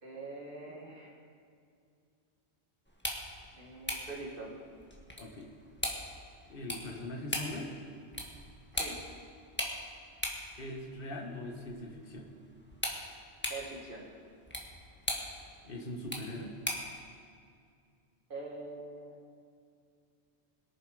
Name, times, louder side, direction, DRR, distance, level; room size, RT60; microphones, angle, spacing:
voice 1, 0.0-1.2 3.5-4.5 6.8-6.9 8.7-9.0 13.5-14.0 18.3-19.2, right 3 dB, 50° right, -1 dB, 2.4 m, -44 dB
sound 1, 2.8-17.0, equal, 10° left, 1.6 m, -41 dB
voice 2, 5.2-5.5 6.4-7.7 10.6-12.3 15.6-16.6, left 1 dB, 55° left, 1 dB, 1.7 m, -41 dB
22.0 x 7.4 x 5.0 m, 2.3 s
omnidirectional pair, 1.1 m